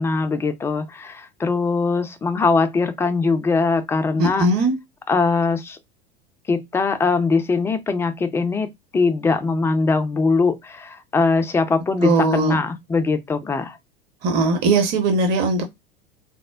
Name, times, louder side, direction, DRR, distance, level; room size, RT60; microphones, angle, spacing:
voice 1, 0.0-4.5 5.1-5.8 6.5-13.8, left 4 dB, 10° left, 0.3 m, -21 dB
voice 2, 4.2-4.8 12.0-12.6 14.2-15.6, right 2 dB, 35° right, 0.8 m, -19 dB
4.1 x 2.0 x 2.2 m
figure-of-eight pair, 85°, 29 cm